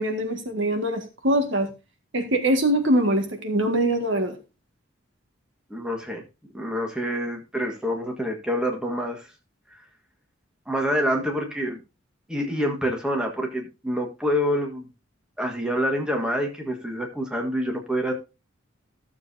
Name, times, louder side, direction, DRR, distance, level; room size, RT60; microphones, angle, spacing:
voice 1, 0.0-1.7 2.1-4.4, right 1 dB, 65° right, 5 dB, 1.8 m, -23 dB
voice 2, 5.7-6.2 6.5-9.3 10.7-11.8 12.3-14.9 15.4-18.1, equal, 5° right, 1 dB, 1.6 m, -27 dB
14.0 x 7.3 x 2.7 m, 0.28 s
head